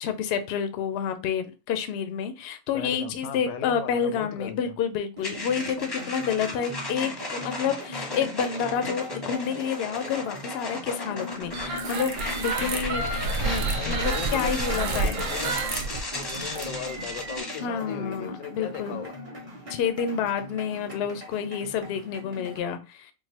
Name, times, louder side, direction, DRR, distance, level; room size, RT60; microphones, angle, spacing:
voice 1, 0.0-12.1 12.4-13.0 13.4-15.2 17.6-19.0 19.7-23.1, left 7 dB, 65° left, 0.6 m, -29 dB
voice 2, 2.7-4.7 13.7-15.6 16.1-19.2, left 8 dB, 90° left, 1.0 m, -37 dB
sound 1, 5.2-17.6, left 2 dB, 25° left, 0.6 m, -36 dB
sound 2, 5.2-22.6, left 1 dB, 30° right, 0.8 m, -40 dB
sound 3, 11.5-17.4, right 3 dB, 70° right, 1.0 m, -30 dB
3.8 x 2.5 x 2.8 m
omnidirectional pair, 1.4 m